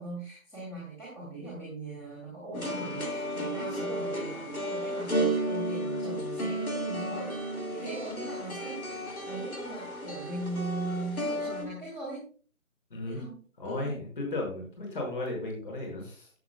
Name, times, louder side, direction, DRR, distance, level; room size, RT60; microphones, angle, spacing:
voice 1, 0.0-12.3 13.1-14.0, right 2 dB, 5° left, -8 dB, 2.3 m, -39 dB
sound 1, 2.5-11.6, right 1 dB, 85° left, 2.8 m, -33 dB
voice 2, 12.9-16.3, left 2 dB, 40° left, 0 dB, 5.7 m, -35 dB
16.5 x 8.1 x 2.3 m, 0.40 s
figure-of-eight pair, 160°, 41 cm